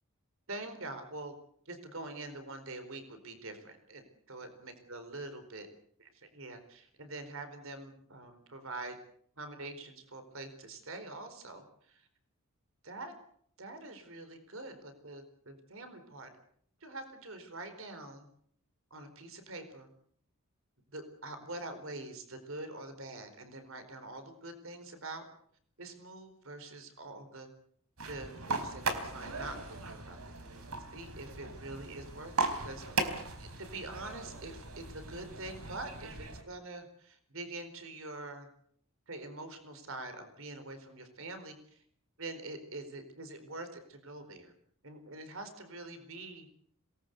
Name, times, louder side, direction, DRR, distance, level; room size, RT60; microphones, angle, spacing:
voice 1, 0.5-1.3 1.7-5.7 6.0-9.0 9.4-12.1 12.8-13.1 13.6-16.3 16.8-18.3 18.9-19.9 20.9-25.2 25.8-27.5 28.1-32.8 33.4-38.5 39.1-41.8 42.2-44.5 44.8-46.5, right 2 dB, 65° right, 9 dB, 4.3 m, -45 dB
sound 1, 28.0-36.4, right 3 dB, 85° right, 4.2 m, -38 dB
26.5 x 19.5 x 8.1 m, 0.64 s
head